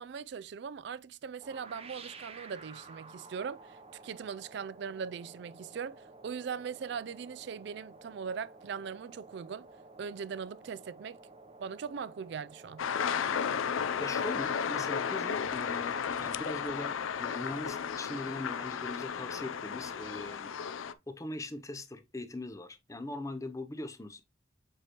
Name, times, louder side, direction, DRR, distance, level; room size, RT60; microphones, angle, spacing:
voice 1, 0.0-9.7 10.0-11.2 11.6-12.8, right 6 dB, 60° right, 0.3 m, -40 dB
sound 1, 1.4-20.2, right 3 dB, 30° right, 0.7 m, -53 dB
sound 2, 12.8-20.9, left 7 dB, 85° left, 0.5 m, -34 dB
voice 2, 14.0-20.5 21.1-24.2, left 2 dB, 15° left, 0.6 m, -41 dB
7.6 x 4.8 x 2.9 m
head